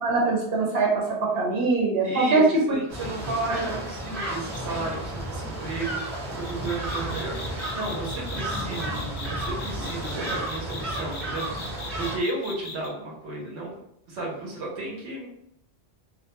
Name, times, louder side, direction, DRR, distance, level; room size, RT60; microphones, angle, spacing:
voice 1, 0.0-2.4 3.6-3.7, right 3 dB, 65° right, -3 dB, 0.9 m, -23 dB
voice 2, 2.0-13.7 14.1-15.3, right 2 dB, 85° right, -2 dB, 1.0 m, -33 dB
sound 1, 2.9-12.2, right 1 dB, 40° right, 0.9 m, -32 dB
sound 2, 4.5-4.8 6.4-12.9, left 3 dB, 60° left, 0.5 m, -39 dB
2.2 x 2.2 x 2.8 m, 0.74 s
omnidirectional pair, 1.1 m